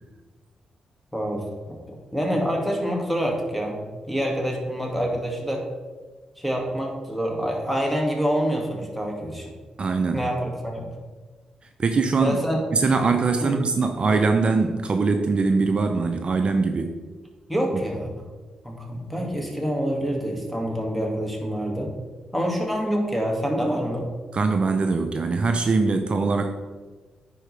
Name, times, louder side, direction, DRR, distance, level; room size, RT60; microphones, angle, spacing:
voice 1, 1.1-3.8 4.1-5.7 6.4-9.5 10.1-10.9 12.2-12.6 13.4-13.5 17.5-18.1 18.6-21.9 22.3-24.1, equal, ahead, 0 dB, 2.1 m, -26 dB
voice 2, 9.8-10.3 11.8-12.5 12.7-17.0 24.3-26.5, right 4 dB, 50° right, 6 dB, 0.6 m, -22 dB
9.9 x 4.6 x 3.4 m, 1.4 s
supercardioid pair, 45°, 2 cm